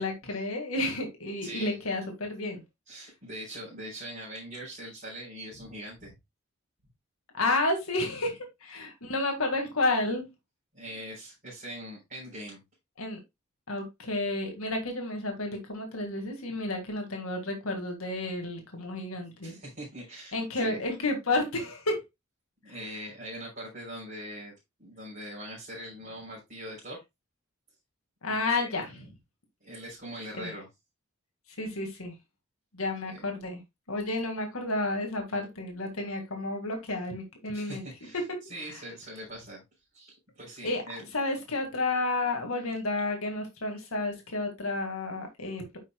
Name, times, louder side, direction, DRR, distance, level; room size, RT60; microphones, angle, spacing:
voice 1, 0.0-2.6 7.3-10.3 13.0-13.2 13.7-19.6 20.3-22.0 22.7-22.8 28.2-29.1 30.4-30.5 31.5-32.2 32.7-33.6 33.9-37.8 38.7-38.8 40.6-45.8, left 2 dB, 80° left, 1.9 m, -31 dB
voice 2, 1.4-1.8 2.9-6.1 10.7-12.6 19.4-20.8 22.6-24.5 24.8-27.0 28.3-28.8 29.6-30.7 33.1-33.2 37.5-38.2 38.5-39.6 39.9-41.0, equal, 40° right, 4.0 m, -42 dB
9.8 x 5.7 x 2.3 m
head